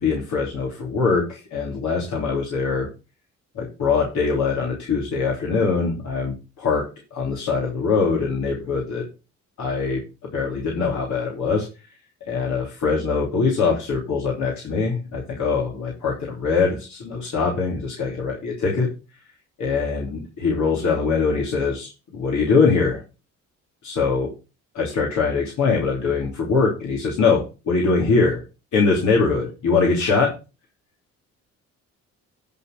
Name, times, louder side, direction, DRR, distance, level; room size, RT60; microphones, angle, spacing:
voice 1, 0.0-2.9 3.5-9.0 9.6-11.7 12.3-18.9 19.6-23.0 23.8-24.3 24.7-28.4 28.7-30.3, left 4 dB, 70° left, -3 dB, 3.1 m, -22 dB
10.5 x 4.5 x 6.0 m, 0.31 s
cardioid pair, 90°, 30 cm